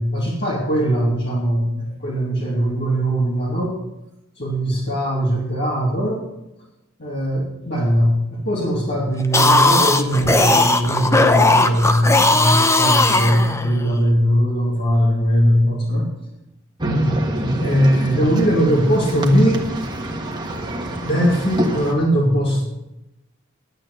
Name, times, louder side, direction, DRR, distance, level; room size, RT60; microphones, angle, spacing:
voice 1, 0.0-3.8 4.4-6.3 7.0-16.1 17.6-19.7 21.0-22.6, equal, 55° left, -5 dB, 2.8 m, -20 dB
sound 1, 9.2-13.9, left 2 dB, 15° left, 0.8 m, -17 dB
sound 2, 16.8-21.9, right 1 dB, 20° right, 1.5 m, -25 dB
11.0 x 9.1 x 8.0 m, 0.92 s
head